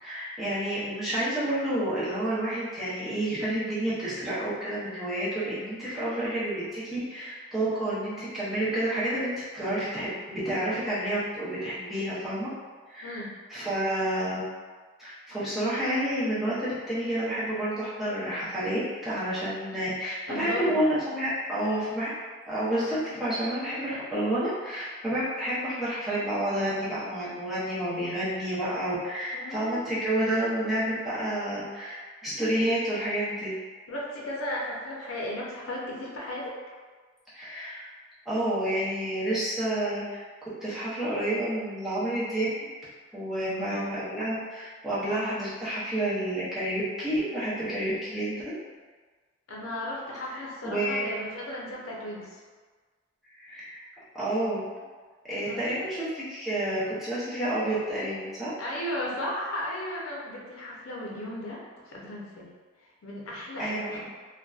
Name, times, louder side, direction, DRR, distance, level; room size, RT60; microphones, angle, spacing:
voice 1, 0.0-12.5 12.9-13.2 13.5-14.4 15.0-22.1 22.5-33.5 37.3-37.8 38.3-40.2 40.6-42.5 43.1-48.6 50.3-51.1 53.4-53.8 54.1-54.6 55.3-58.5 63.6-64.0, right 1 dB, ahead, -12 dB, 0.6 m, -29 dB
voice 2, 13.0-13.3 20.3-20.7 29.3-29.9 33.9-36.5 43.4-44.0 49.5-52.4 55.5-55.6 58.6-62.5 63.0-64.0, left 1 dB, 85° left, -3 dB, 0.5 m, -35 dB
2.6 x 2.2 x 2.3 m, 1.4 s
head